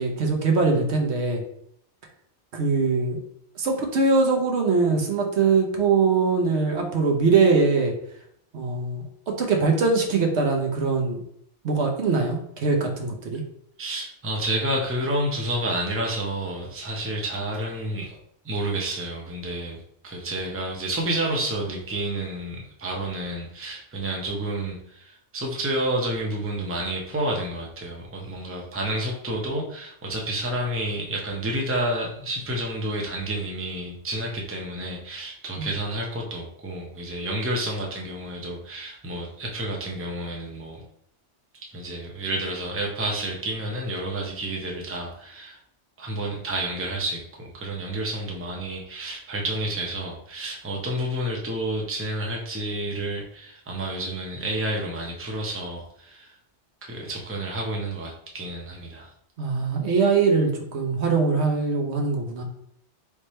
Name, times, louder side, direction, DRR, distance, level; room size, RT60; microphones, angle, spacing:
voice 1, 0.0-1.4 2.5-3.2 3.6-7.9 8.5-11.2 11.6-13.4 35.6-35.7 59.4-62.4, right 4 dB, 70° right, 2 dB, 1.1 m, -22 dB
voice 2, 13.8-18.2 18.4-40.8 41.5-45.6 46.0-56.4 56.8-59.1, right 1 dB, 15° right, -1 dB, 0.6 m, -30 dB
3.5 x 3.2 x 4.2 m, 0.69 s
omnidirectional pair, 1.2 m